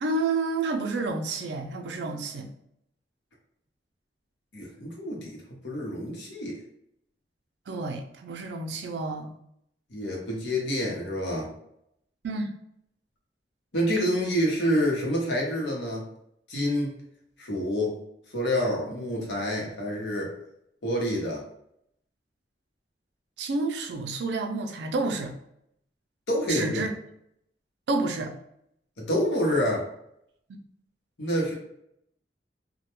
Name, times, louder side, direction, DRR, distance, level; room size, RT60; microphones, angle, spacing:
voice 1, 0.0-2.5 7.7-9.3 12.2-12.5 23.4-25.3 26.5-26.9 27.9-28.3, right 3 dB, 70° right, 4 dB, 0.4 m, -29 dB
voice 2, 4.5-6.6 9.9-11.5 13.7-16.0 16.5-17.0 17.4-17.9 18.3-20.3 20.8-21.4 26.3-26.8 29.0-29.9 31.2-31.5, equal, 80° left, -2 dB, 0.8 m, -27 dB
2.2 x 2.1 x 2.9 m, 0.75 s
head